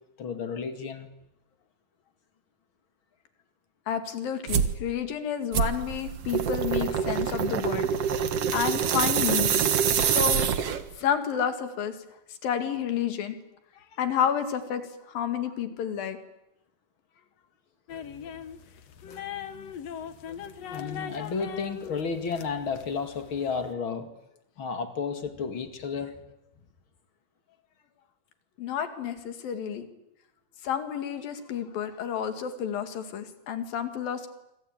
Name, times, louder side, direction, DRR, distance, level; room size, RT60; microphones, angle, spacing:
voice 1, 0.2-1.1 20.7-24.1 24.6-26.2, left 5 dB, 40° left, 8 dB, 2.5 m, -32 dB
voice 2, 3.9-7.9 8.5-9.6 10.0-10.5 11.0-12.0 12.4-13.4 14.0-16.2 28.6-29.9 30.6-34.3, left 8 dB, 75° left, 8 dB, 3.9 m, -30 dB
sound 1, 4.5-4.8 5.5-11.0, right 8 dB, 55° right, 2.0 m, -25 dB
sound 2, 17.9-23.7, left 8 dB, 55° left, 2.1 m, -40 dB
26.0 x 25.5 x 9.0 m, 0.86 s
omnidirectional pair, 4.2 m